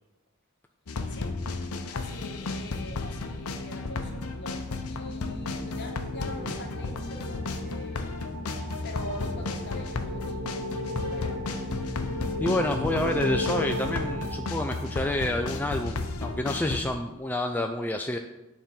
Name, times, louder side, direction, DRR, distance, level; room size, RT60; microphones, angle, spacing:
sound 1, 0.9-16.8, left 3 dB, 80° left, 0.7 m, -34 dB
voice 1, 1.9-8.3 8.8-10.5 10.8-11.5, left 1 dB, 55° left, 2 dB, 1.2 m, -43 dB
sound 2, 4.7-15.2, left 1 dB, 85° right, 1.8 m, -36 dB
voice 2, 12.4-18.2, left 1 dB, 10° left, 3 dB, 0.3 m, -28 dB
9.4 x 3.6 x 5.7 m, 1.0 s
head